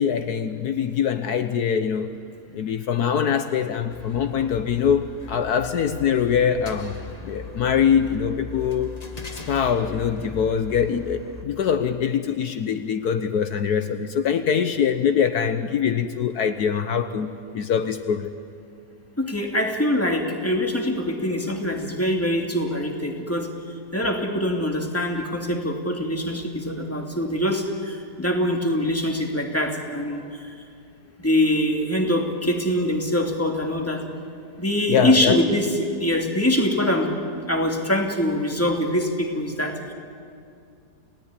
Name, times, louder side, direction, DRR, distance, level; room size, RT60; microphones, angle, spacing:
voice 1, 0.0-2.1 2.5-7.0 7.2-8.9 9.3-18.3 34.9-35.4, left 7 dB, 70° left, 9 dB, 1.4 m, -23 dB
sound 1, 3.9-11.4, left 5 dB, 25° left, 1.5 m, -39 dB
voice 2, 19.2-23.5 23.9-30.5 31.2-34.0 34.6-37.1 37.5-39.9, left 1 dB, 10° left, 2 dB, 2.6 m, -24 dB
29.0 x 18.0 x 9.8 m, 2.3 s
omnidirectional pair, 1.8 m